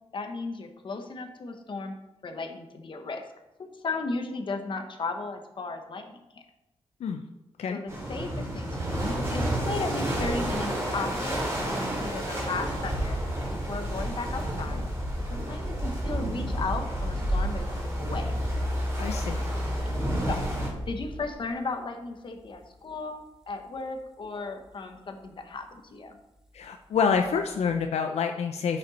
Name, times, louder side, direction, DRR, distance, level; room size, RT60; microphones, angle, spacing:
voice 1, 0.1-2.0 2.2-3.2 3.6-6.4 7.7-13.2 13.5-14.9 15.3-18.3 20.2-20.5 20.9-26.2, left 3 dB, 50° left, 5 dB, 1.2 m, -35 dB
sound 1, 7.9-20.7, right 1 dB, 25° right, 3.0 m, -31 dB
sound 2, 13.0-21.8 22.5-22.9 23.5-23.6 27.2-27.8, left 1 dB, 5° right, 1.3 m, -35 dB
voice 2, 19.0-19.4 26.5-28.8, left 6 dB, 85° left, 5 dB, 0.6 m, -27 dB
9.6 x 6.6 x 4.2 m, 0.93 s
wide cardioid pair, 110°, 11 cm